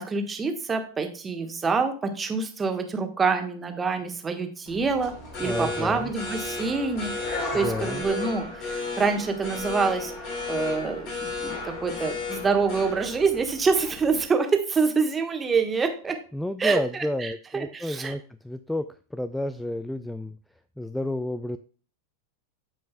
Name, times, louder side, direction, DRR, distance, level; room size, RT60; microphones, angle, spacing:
voice 1, 0.0-5.1 5.4-10.1 10.5-16.2 16.6-18.1, right 4 dB, 15° right, 5 dB, 1.3 m, -26 dB
sound 1, 4.7-14.2, left 3 dB, 45° left, 2.9 m, -34 dB
voice 2, 5.4-6.1 7.5-8.0 16.3-18.9 19.1-20.4 20.8-21.6, left 1 dB, 5° left, 13 dB, 0.3 m, -30 dB
14.0 x 5.2 x 2.3 m, 0.41 s
figure-of-eight pair, 90°, 0 cm